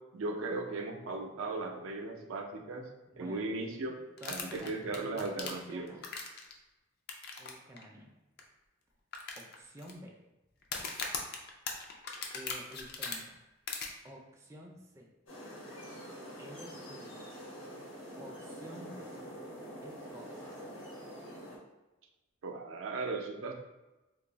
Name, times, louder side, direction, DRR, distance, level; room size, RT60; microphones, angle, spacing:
voice 1, 0.1-2.9 3.2-4.0 4.3-5.9 22.4-23.5, right 3 dB, 85° right, 3 dB, 0.5 m, -37 dB
voice 2, 3.1-3.4 4.2-6.0 7.4-8.1 9.4-10.1 12.3-13.4 14.0-15.1 16.4-17.2 18.2-19.1 19.8-20.5, equal, 15° right, -1 dB, 0.4 m, -50 dB
sound 1, 4.2-6.5 7.1-7.5 7.8-7.9 8.4-8.5 9.1-9.9 10.6-13.2 13.7-13.9, left 5 dB, 50° left, 0.4 m, -39 dB
sound 2, 15.3-21.6, equal, 85° left, 1.1 m, -46 dB
2.6 x 2.3 x 3.9 m, 1.0 s
head